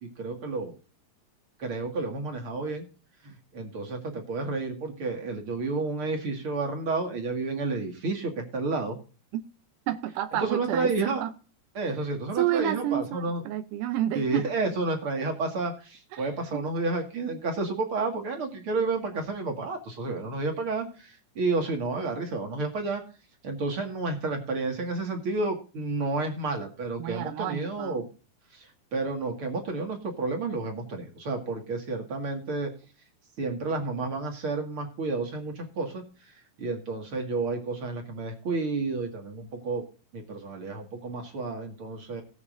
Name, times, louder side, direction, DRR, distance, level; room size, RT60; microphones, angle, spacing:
voice 1, 0.2-0.7 1.6-2.9 3.2-9.0 10.4-11.2 11.7-13.4 14.1-23.0 23.4-28.1 28.5-32.7 33.4-39.8 40.1-42.2, right 3 dB, 45° right, 3 dB, 2.6 m, -31 dB
voice 2, 9.9-11.3 12.4-14.4 16.1-16.3 16.5-16.6 27.0-28.0, right 13 dB, 85° right, 7 dB, 2.3 m, -30 dB
18.5 x 8.4 x 2.6 m, 0.36 s
omnidirectional pair, 3.6 m